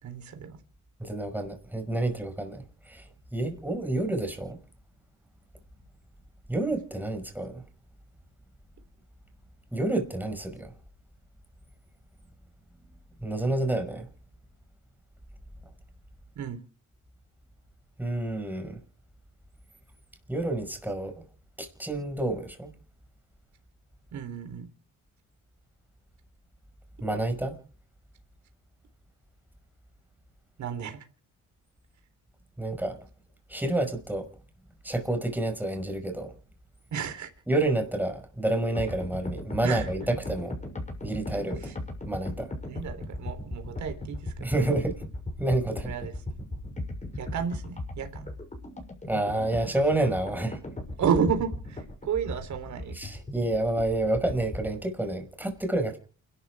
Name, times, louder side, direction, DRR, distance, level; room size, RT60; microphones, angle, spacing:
voice 1, 0.0-0.6 16.4-16.6 24.1-24.7 30.6-31.1 36.9-37.3 39.6-39.9 41.6-41.8 42.7-44.7 45.8-46.4 47.2-48.3 51.0-53.0, right 7 dB, 70° right, 3.6 m, -32 dB
voice 2, 1.0-3.0 3.3-4.6 6.5-7.6 9.7-10.7 13.2-14.1 18.0-18.8 20.3-21.1 21.6-22.7 27.0-27.6 32.6-33.0 33.5-34.3 34.8-36.3 37.5-40.5 41.0-41.7 42.1-42.5 44.4-45.0 45.4-45.9 49.1-50.6 53.0-56.0, right 2 dB, 5° right, 5.6 m, -29 dB
sound 1, 38.7-54.8, left 1 dB, 25° left, 7.0 m, -38 dB
29.0 x 12.5 x 3.6 m
cardioid pair, 90°, 30 cm